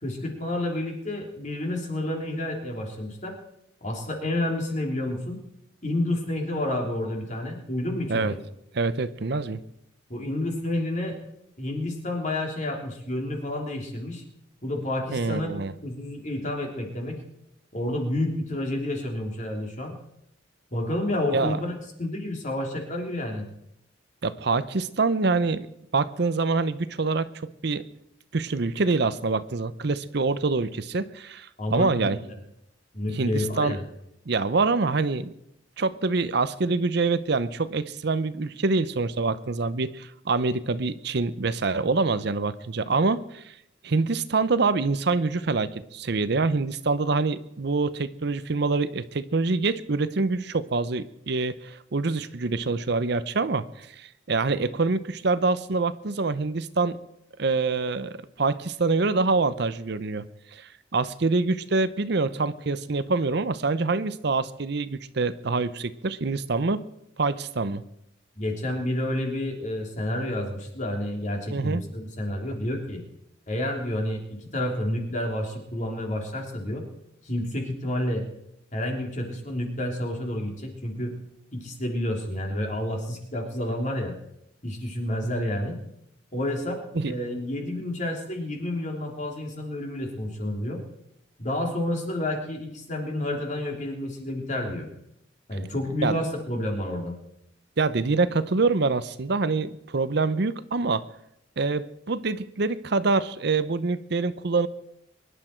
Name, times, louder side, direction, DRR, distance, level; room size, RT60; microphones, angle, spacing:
voice 1, 0.0-3.4 3.8-5.4 5.8-8.4 10.1-11.2 11.6-14.2 14.6-15.5 15.8-17.2 17.7-19.9 20.7-21.7 22.0-23.5 31.6-32.1 32.9-33.8 68.4-73.0 73.5-76.8 77.2-78.2 78.7-81.1 81.5-84.1 84.6-85.8 86.3-90.8 91.4-94.9 95.5-97.1, left 1 dB, 40° left, 1 dB, 3.1 m, -29 dB
voice 2, 8.7-9.6 15.1-15.7 21.3-21.6 24.2-25.7 25.9-27.8 28.3-32.2 33.1-33.8 34.3-35.3 35.8-43.5 43.8-57.0 57.4-60.2 60.5-66.8 67.2-67.8 71.5-71.8 86.9-87.1 96.0-96.1 97.8-101.0 101.6-104.7, right 3 dB, 60° right, 13 dB, 0.7 m, -25 dB
23.5 x 11.0 x 4.5 m, 0.78 s
head